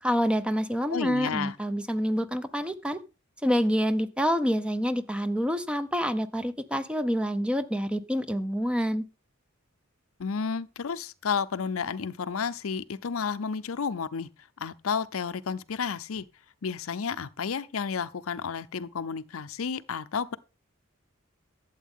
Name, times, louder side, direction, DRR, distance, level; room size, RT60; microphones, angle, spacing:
voice 1, 0.0-3.0 3.4-9.0, equal, 5° right, 0.6 m, -27 dB
voice 2, 0.9-1.5 10.2-14.3 14.6-16.2 16.6-20.4, left 6 dB, 90° left, 0.6 m, -31 dB
12.0 x 8.0 x 3.7 m
head